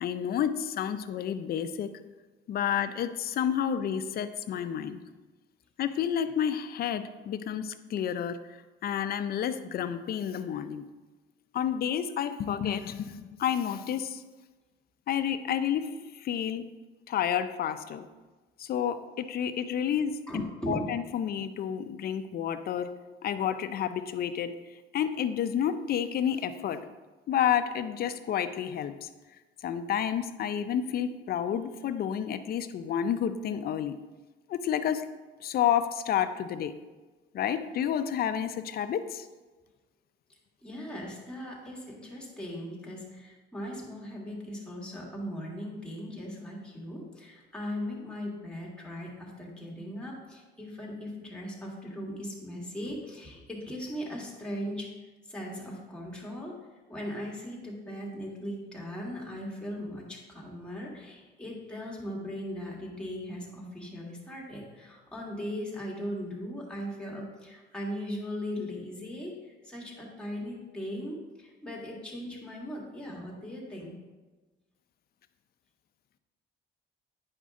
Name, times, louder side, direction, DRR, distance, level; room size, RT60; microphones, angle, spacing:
voice 1, 0.0-1.9 2.5-5.0 5.8-8.4 8.8-10.8 11.5-14.2 15.1-16.7 17.1-18.1 18.6-22.9 23.2-24.5 24.9-26.8 27.3-29.1 29.6-34.0 34.5-35.1 35.4-36.7 37.3-39.2, left 9 dB, 50° left, 10 dB, 0.5 m, -30 dB
voice 2, 20.3-20.9 40.6-54.9 55.3-56.5 56.9-69.3 69.7-74.0, equal, 5° left, -3 dB, 1.9 m, -38 dB
9.9 x 5.1 x 3.7 m, 1.3 s
cardioid pair, 125°, 20 cm